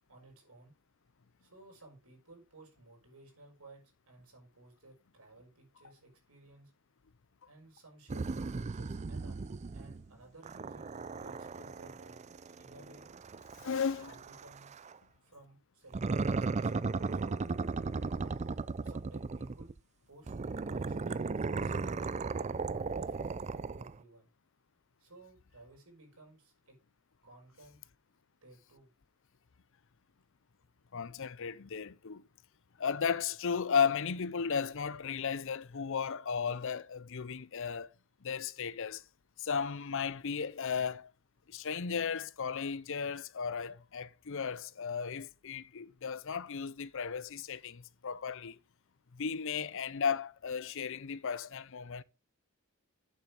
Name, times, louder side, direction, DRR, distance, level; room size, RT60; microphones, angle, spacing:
voice 1, 0.1-0.7 1.4-6.7 7.5-9.4 9.7-10.8 11.2-12.2 12.6-13.1 13.9-14.7 15.2-16.0 16.3-17.4 18.2-18.3 18.8-19.7 20.1-21.9 22.3-24.3 25.0-26.8 27.2-27.8 28.4-28.9, right 2 dB, 85° right, 5.8 m, -57 dB
sound 1, 8.1-10.1 10.4-14.9 15.9-19.8 20.3-24.0, right 4 dB, 30° right, 0.4 m, -36 dB
voice 2, 13.6-14.1 30.9-32.2 32.8-37.9 38.2-39.0 39.4-41.1 41.5-48.6 49.1-52.0, left 6 dB, 60° left, 0.7 m, -35 dB
8.6 x 7.4 x 5.3 m
head